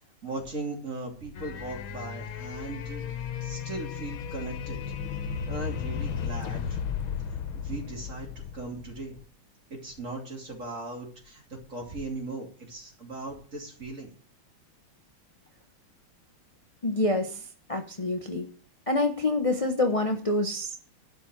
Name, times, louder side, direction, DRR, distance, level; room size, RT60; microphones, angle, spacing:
voice 1, 0.2-3.0 3.4-4.8 5.5-6.8 7.3-8.3 8.5-9.2 9.7-14.1, right 2 dB, 35° right, 1 dB, 3.3 m, -38 dB
sound 1, 1.3-9.2, left 7 dB, 80° left, 1.7 m, -35 dB
voice 2, 16.8-18.5 18.9-20.8, left 2 dB, 40° left, 5 dB, 0.4 m, -27 dB
11.5 x 5.3 x 8.7 m, 0.43 s
omnidirectional pair, 2.3 m